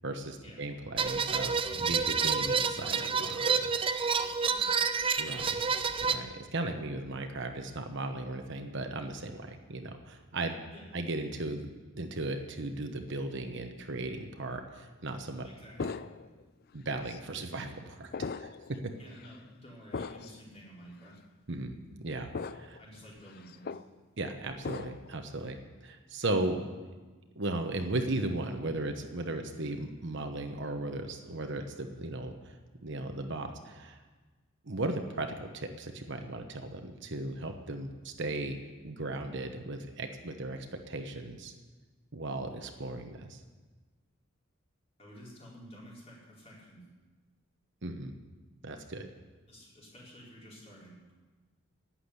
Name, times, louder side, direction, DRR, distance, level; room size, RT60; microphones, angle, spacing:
voice 1, 0.0-3.7 5.2-5.6 6.0-10.6 10.9-11.7 11.9-15.5 15.8-15.9 16.7-18.1 18.4-18.5 21.5-22.8 24.2-26.6 27.4-32.6 32.8-34.0 34.6-38.6 38.8-41.5 42.1-43.4 47.8-48.1 48.6-49.1, right 2 dB, 55° right, 5 dB, 1.1 m, -36 dB
sound 1, 1.0-6.2, right 5 dB, 25° right, 0.6 m, -29 dB
voice 2, 4.4-4.9 10.7-10.9 15.4-16.0 19.0-21.2 22.8-23.8 45.0-46.8 49.5-51.0, equal, 30° left, -5 dB, 4.8 m, -51 dB
sound 2, 15.8-16.4 17.1-17.2 18.1-18.7 19.1-19.3 19.9-20.4 21.1-21.2 22.3-22.8 23.2-23.9 24.6-25.1, left 4 dB, 45° left, 0.4 m, -38 dB
12.0 x 8.8 x 9.8 m, 1.3 s
head